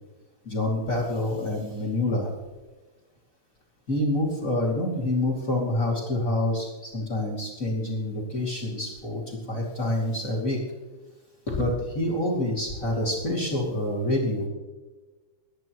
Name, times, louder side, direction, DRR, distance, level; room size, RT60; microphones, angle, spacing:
voice 1, 0.4-2.3 3.9-10.6 11.5-14.5, left 1 dB, 45° left, -4 dB, 1.0 m, -27 dB
22.5 x 10.5 x 3.1 m, 1.2 s
omnidirectional pair, 5.9 m